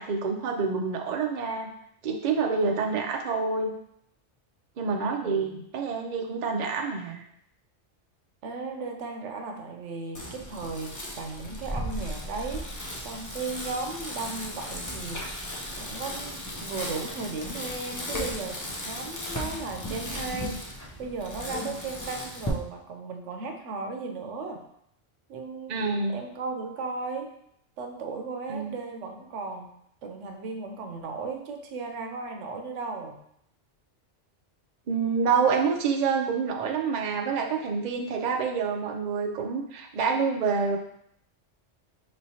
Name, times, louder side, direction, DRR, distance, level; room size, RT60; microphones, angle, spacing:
voice 1, 0.0-1.7 2.0-3.7 4.8-7.2 25.7-26.2 28.5-28.8 34.9-40.8, right 5 dB, 50° right, 2 dB, 0.5 m, -27 dB
voice 2, 5.2-5.6 8.4-15.5 15.8-24.6 25.3-25.8 26.1-27.3 27.8-29.7 30.0-33.2, right 4 dB, 80° right, 4 dB, 1.0 m, -36 dB
Bicycle, 10.1-22.5, left 1 dB, 25° left, 0.5 m, -36 dB
5.2 x 3.1 x 2.8 m, 0.73 s
omnidirectional pair, 1.2 m